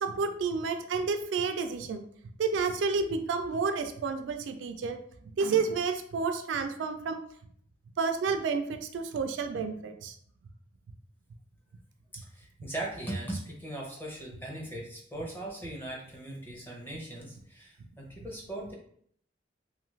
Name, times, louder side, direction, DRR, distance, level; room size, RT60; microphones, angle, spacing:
voice 1, 0.0-2.0 2.4-5.0 5.4-7.2 8.0-10.2, right 5 dB, 75° right, 6 dB, 0.3 m, -30 dB
voice 2, 12.3-18.7, right 1 dB, 10° left, -2 dB, 0.6 m, -39 dB
2.6 x 2.4 x 3.1 m, 0.63 s
head